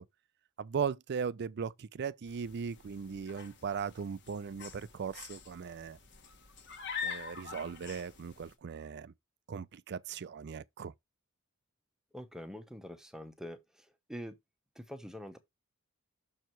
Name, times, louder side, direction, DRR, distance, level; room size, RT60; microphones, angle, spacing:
voice 1, 0.6-6.0 7.0-9.1 9.5-10.9, right 6 dB, 50° right, 0.4 m, -38 dB
sound 1, 2.3-8.5, left 6 dB, 55° left, 1.4 m, -45 dB
voice 2, 12.1-14.4 14.8-15.4, equal, ahead, 0.8 m, -45 dB
6.4 x 4.6 x 4.5 m
head